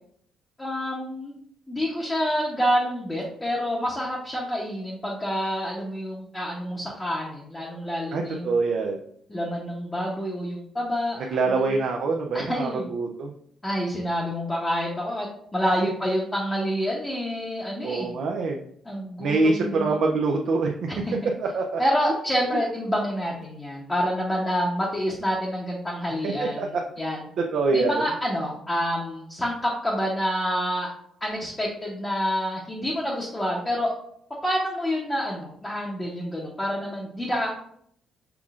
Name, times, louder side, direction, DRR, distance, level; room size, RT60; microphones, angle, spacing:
voice 1, 0.6-1.3 1.7-8.6 9.3-11.8 12.3-12.9 13.6-18.1 18.8-20.0 20.9-21.3 21.8-27.3 27.7-30.9 31.2-33.9 34.4-37.5, equal, 10° left, -4 dB, 0.8 m, -28 dB
voice 2, 8.1-9.0 11.3-13.3 17.8-18.6 19.2-20.9 21.4-21.8 22.5-22.6 26.2-26.8 27.5-28.0, right 3 dB, 60° right, 0 dB, 0.5 m, -25 dB
5.8 x 3.6 x 2.4 m, 0.67 s
cardioid pair, 150°, 0 cm